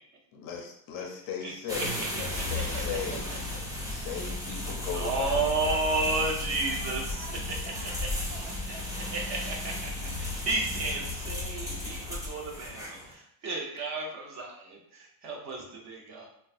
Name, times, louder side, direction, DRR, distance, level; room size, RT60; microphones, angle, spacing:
voice 1, 0.3-3.3 3.9-5.5, left 7 dB, 45° left, 1 dB, 0.6 m, -37 dB
sound 1, 1.7-13.1, left 2 dB, 10° right, 0.5 m, -34 dB
voice 2, 2.2-2.6 3.8-4.0 4.9-7.2 8.7-8.8 9.1-16.3, right 3 dB, 35° right, -1 dB, 0.8 m, -32 dB
voice 3, 5.6-6.3 6.6-7.3 7.6-9.1, right 3 dB, 75° right, -1 dB, 1.2 m, -47 dB
3.8 x 2.3 x 2.4 m, 0.71 s
cardioid pair, 140°, 49 cm